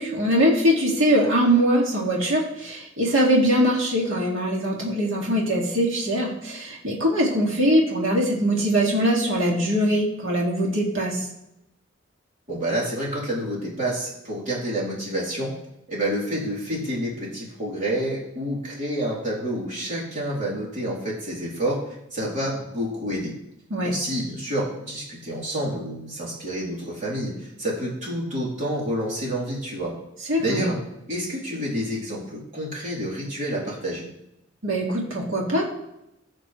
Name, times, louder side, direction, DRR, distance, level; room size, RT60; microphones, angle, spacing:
voice 1, 0.0-11.2 23.7-23.9 30.3-30.7 34.6-35.6, equal, 90° right, -2 dB, 2.2 m, -22 dB
voice 2, 12.5-15.5 15.9-21.8 22.1-23.3 23.8-29.9 30.4-30.8 31.1-34.0, right 1 dB, 40° right, -5 dB, 3.5 m, -28 dB
15.5 x 6.0 x 3.2 m, 0.85 s
head